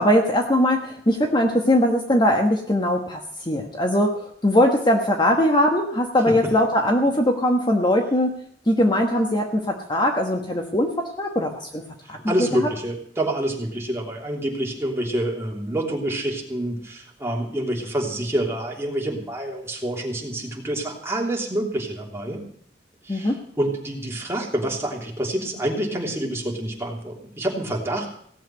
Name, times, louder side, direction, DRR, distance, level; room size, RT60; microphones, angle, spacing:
voice 1, 0.0-8.4 8.7-12.2 12.5-12.7 23.1-23.4, left 1 dB, 25° left, 3 dB, 1.3 m, -21 dB
voice 2, 12.1-22.4 23.0-28.1, right 1 dB, 15° right, -1 dB, 3.2 m, -27 dB
17.0 x 7.7 x 9.2 m, 0.66 s
head